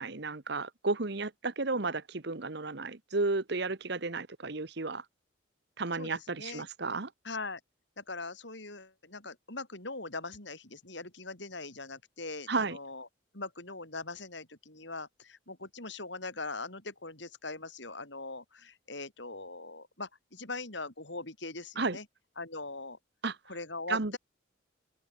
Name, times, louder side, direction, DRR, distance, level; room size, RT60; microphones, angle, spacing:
voice 1, 0.0-5.0 5.8-7.1 12.5-12.8 21.8-22.0 23.2-23.4 23.9-24.2, right 3 dB, 55° right, 1.2 m, -33 dB
voice 2, 5.9-6.7 7.2-7.6 8.0-13.1 13.3-22.1 22.4-23.0 23.5-24.2, left 3 dB, 65° left, 5.4 m, -41 dB
open air
head